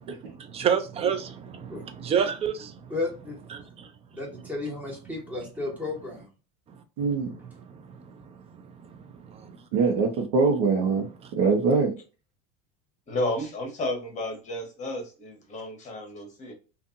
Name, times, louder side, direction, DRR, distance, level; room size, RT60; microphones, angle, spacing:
voice 1, 0.2-2.9 3.5-3.9 7.0-9.6 11.2-11.3, right 7 dB, 20° right, 0.4 m, -31 dB
voice 2, 2.9-3.4 4.1-6.3, left 3 dB, 5° right, 1.2 m, -33 dB
voice 3, 7.0-7.3 9.7-11.0 11.4-11.9, right 4 dB, 65° right, 0.9 m, -22 dB
voice 4, 13.1-16.5, left 1 dB, 25° left, 1.1 m, -32 dB
2.5 x 2.5 x 2.5 m
supercardioid pair, 125°, 30 cm